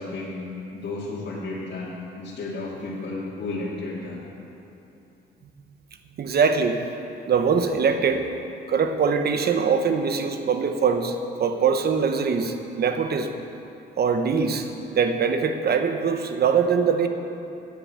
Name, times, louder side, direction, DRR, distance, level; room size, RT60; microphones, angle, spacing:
voice 1, 0.0-4.3, left 2 dB, 60° left, -6 dB, 2.3 m, -33 dB
voice 2, 6.2-6.8 7.3-8.3 8.7-13.3 14.0-17.1, right 6 dB, 55° right, 7 dB, 1.2 m, -22 dB
10.0 x 9.9 x 8.3 m, 2.8 s
cardioid pair, 90°, 20 cm